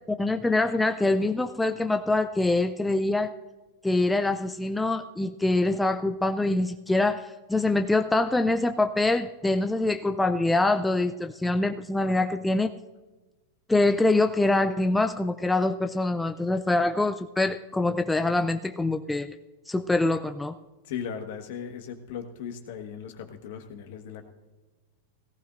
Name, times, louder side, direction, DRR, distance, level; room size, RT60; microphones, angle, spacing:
voice 1, 0.1-3.3 3.8-12.7 13.7-19.3 19.7-20.6, left 2 dB, 5° left, 7 dB, 0.4 m, -24 dB
voice 2, 20.8-24.3, left 7 dB, 65° left, 6 dB, 1.5 m, -38 dB
17.5 x 15.0 x 2.6 m, 1.2 s
hypercardioid pair, 115°, 0 cm